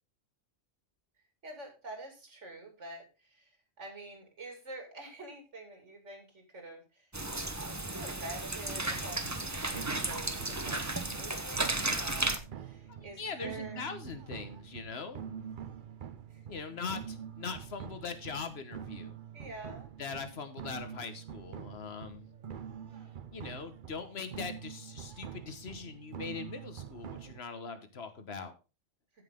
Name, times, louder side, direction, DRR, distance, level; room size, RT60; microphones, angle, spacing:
voice 1, 1.4-3.5 3.8-7.1 7.9-13.8 16.3-16.4 19.3-19.9, right 2 dB, 80° right, 4 dB, 3.1 m, -47 dB
sound 1, 7.1-12.4, right 2 dB, 15° right, 0.8 m, -34 dB
sound 2, 8.8-27.4, right 8 dB, 50° right, 0.7 m, -46 dB
voice 2, 12.9-15.2 16.5-19.2 20.0-22.2 23.3-28.5, left 5 dB, 60° left, 9 dB, 1.5 m, -41 dB
15.5 x 5.6 x 3.7 m, 0.30 s
omnidirectional pair, 1.2 m